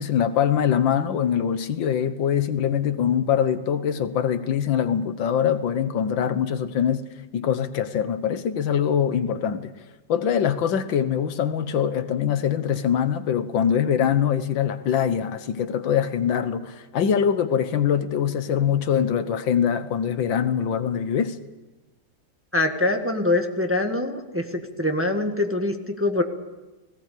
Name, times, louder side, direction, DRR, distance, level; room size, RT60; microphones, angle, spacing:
voice 1, 0.0-7.1 7.3-9.7 10.1-21.4, left 8 dB, 85° left, 1.8 m, -23 dB
voice 2, 22.5-26.2, left 2 dB, 5° right, 1.5 m, -24 dB
18.5 x 17.5 x 8.4 m
omnidirectional pair, 2.0 m